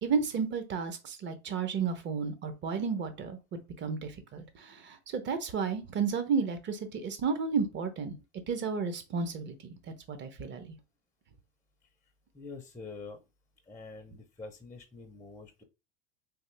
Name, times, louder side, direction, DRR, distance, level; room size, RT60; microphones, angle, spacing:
voice 1, 0.0-8.2 8.5-10.6, right 5 dB, 30° right, 0.9 m, -32 dB
voice 2, 12.3-13.2 13.7-15.6, left 4 dB, 10° left, 0.6 m, -46 dB
3.5 x 2.6 x 3.2 m
hypercardioid pair, 105°, 35 cm